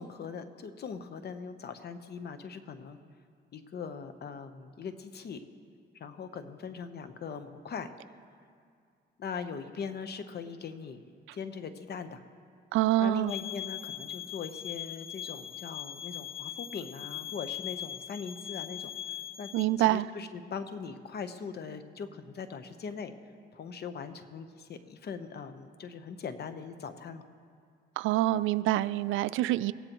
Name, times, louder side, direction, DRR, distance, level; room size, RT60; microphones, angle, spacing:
voice 1, 0.0-3.0 3.5-5.4 5.9-7.9 9.2-11.0 11.3-12.2 13.0-18.9 19.4-19.5 19.8-23.1 23.5-27.2, left 6 dB, 55° left, 9 dB, 1.0 m, -40 dB
voice 2, 12.7-13.3 19.5-20.1 28.0-29.7, right 14 dB, 90° right, 16 dB, 0.4 m, -26 dB
sound 1, 13.3-19.7, left 12 dB, 30° left, 0.6 m, -40 dB
23.5 x 16.5 x 3.1 m, 2.3 s
cardioid pair, 90°, 20 cm